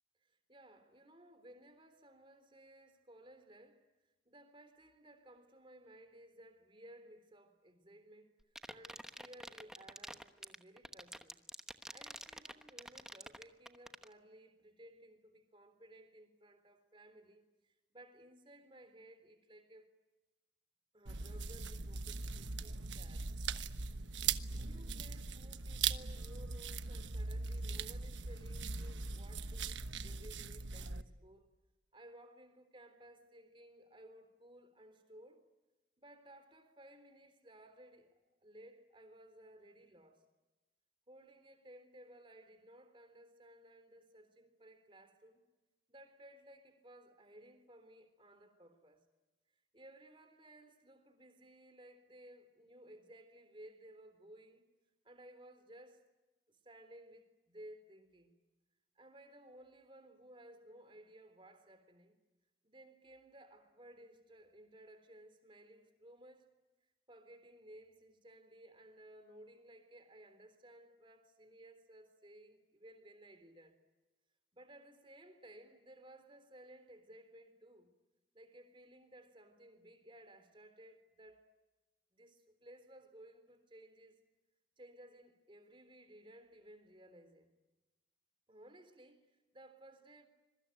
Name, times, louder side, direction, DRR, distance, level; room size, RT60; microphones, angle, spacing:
voice 1, 0.2-3.9 4.3-8.3 8.7-11.4 11.9-19.9 20.9-23.3 24.5-31.5 31.9-35.4 36.0-40.2 41.1-45.4 45.9-49.0 49.7-54.6 55.0-56.0 56.5-58.3 59.0-62.2 62.6-66.5 67.1-73.8 74.5-77.9 78.3-81.5 82.1-84.2 84.8-87.5 88.5-90.3, right 1 dB, 30° right, 3.7 m, -58 dB
sound 1, 8.4-14.1, right 1 dB, 5° right, 1.0 m, -47 dB
sound 2, 21.1-31.0, right 5 dB, 90° right, 1.2 m, -40 dB
26.0 x 23.0 x 9.3 m
head